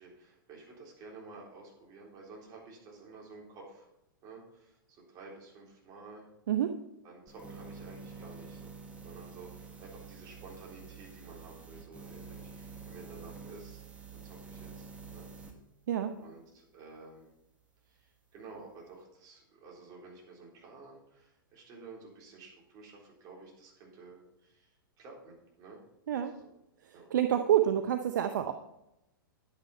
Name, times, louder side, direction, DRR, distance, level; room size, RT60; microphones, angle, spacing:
voice 1, 0.0-3.9 4.2-6.3 7.0-8.7 9.0-13.8 14.1-15.3 16.2-17.3 17.8-25.8 26.2-26.5 26.9-27.1, right 3 dB, 35° right, -2 dB, 3.9 m, -52 dB
voice 2, 6.5-6.8 15.9-16.1 26.1-26.3 26.8-28.5, right 10 dB, 60° right, 7 dB, 0.7 m, -28 dB
sound 1, 7.3-15.5, right 5 dB, 10° right, 1.5 m, -48 dB
10.5 x 9.4 x 4.4 m, 0.87 s
figure-of-eight pair, 105°, 11 cm